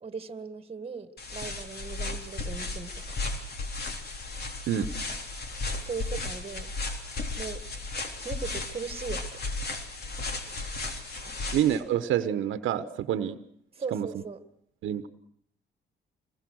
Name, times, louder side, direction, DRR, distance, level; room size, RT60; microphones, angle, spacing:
voice 1, 0.0-3.2 5.8-6.7 7.4-7.7 8.2-9.4 11.2-11.4 13.7-14.4, right 5 dB, 30° right, 11 dB, 1.9 m, -38 dB
sound 1, 1.2-11.8, left 3 dB, 55° left, 3.5 m, -35 dB
voice 2, 11.5-13.4 13.9-14.1 14.8-15.1, right 10 dB, 80° right, 11 dB, 1.2 m, -27 dB
25.5 x 20.5 x 6.4 m, 0.69 s
cardioid pair, 90°, 20 cm